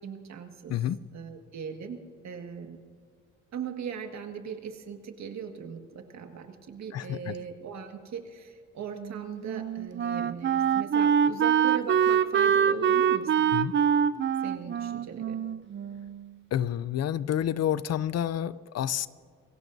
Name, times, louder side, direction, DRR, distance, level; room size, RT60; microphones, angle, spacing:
voice 1, 0.0-0.7 1.1-2.8 3.5-13.6 14.4-15.4, right 7 dB, 65° right, 5 dB, 1.8 m, -39 dB
voice 2, 6.9-7.4 13.5-13.7 16.5-19.1, left 10 dB, 55° left, 17 dB, 0.5 m, -29 dB
Wind instrument woodwind instrument, 9.0-16.3, right 8 dB, 40° right, 0.5 m, -25 dB
28.0 x 17.0 x 2.7 m, 2.1 s
cardioid pair, 90°, 30 cm